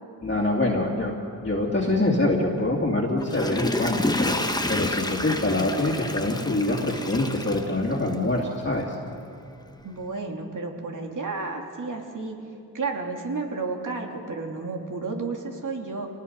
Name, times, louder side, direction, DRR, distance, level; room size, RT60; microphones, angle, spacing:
voice 1, 0.2-1.1 1.4-8.9, left 2 dB, 30° left, -4 dB, 2.6 m, -25 dB
Water / Toilet flush, 3.1-8.4 8.8-8.9, left 1 dB, 10° left, 1.2 m, -29 dB
voice 2, 9.8-12.4 12.7-16.1, right 3 dB, 50° right, 2 dB, 2.9 m, -32 dB
27.5 x 19.5 x 5.4 m, 2.5 s
cardioid pair, 75°, 40 cm